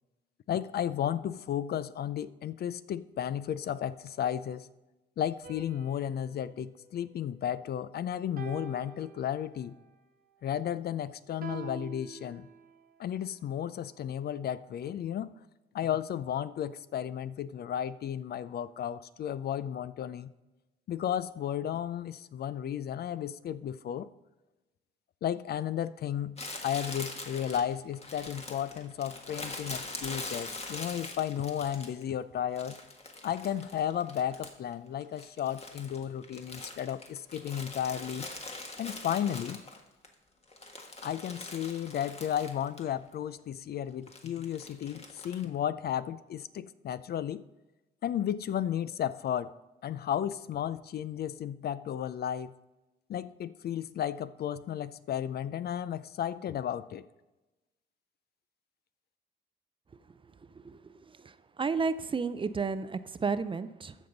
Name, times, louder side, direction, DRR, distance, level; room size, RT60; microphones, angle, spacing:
voice 1, 0.5-4.7 5.2-9.7 10.4-12.5 13.0-15.3 15.7-20.3 20.9-24.1 25.2-26.4 26.6-32.8 33.2-38.3 38.8-39.6 41.0-47.4 48.0-49.5 49.8-52.5 53.1-57.0, left 10 dB, 55° left, 15 dB, 0.4 m, -33 dB
sound 1, 5.4-7.8 8.4-9.8 11.4-12.9, right 6 dB, 45° right, 1.1 m, -47 dB
Crumpling crinkling, 26.4-32.1 32.6-34.7 35.0-40.1 40.4-42.9 43.1-43.2 44.1-45.4, left 2 dB, 30° left, 1.5 m, -43 dB
voice 2, 60.5-64.0, right 4 dB, 25° right, 14 dB, 0.5 m, -33 dB
14.5 x 5.4 x 3.9 m, 1.1 s
cardioid pair, 90°, 20 cm